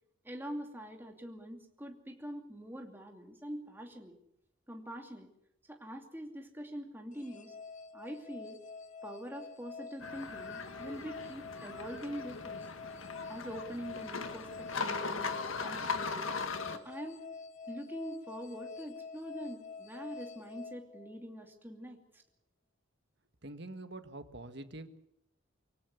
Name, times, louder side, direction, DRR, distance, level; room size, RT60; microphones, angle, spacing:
voice 1, 0.2-4.2 4.7-5.3 5.7-7.5 7.9-8.6 9.0-12.6 13.3-16.4 16.7-17.2 17.7-22.2, equal, 10° right, 2 dB, 2.7 m, -44 dB
sound 1, 7.1-21.5, left 4 dB, 35° left, 0.9 m, -47 dB
sound 2, 10.0-16.8, left 4 dB, 75° left, 1.8 m, -39 dB
voice 2, 23.4-25.0, right 2 dB, 55° right, 9 dB, 1.7 m, -45 dB
24.5 x 17.5 x 8.3 m, 0.77 s
head